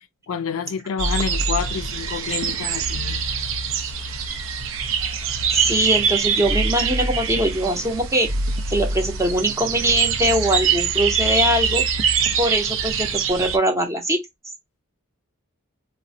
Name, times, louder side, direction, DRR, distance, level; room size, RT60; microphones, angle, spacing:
voice 1, 0.3-3.2, left 6 dB, 75° left, 0.4 m, -28 dB
sound 1, 1.0-13.6, right 5 dB, 65° right, 0.5 m, -24 dB
voice 2, 5.5-8.3 8.7-11.8 12.4-14.2, right 1 dB, 15° right, 0.6 m, -21 dB
3.9 x 2.0 x 2.6 m
head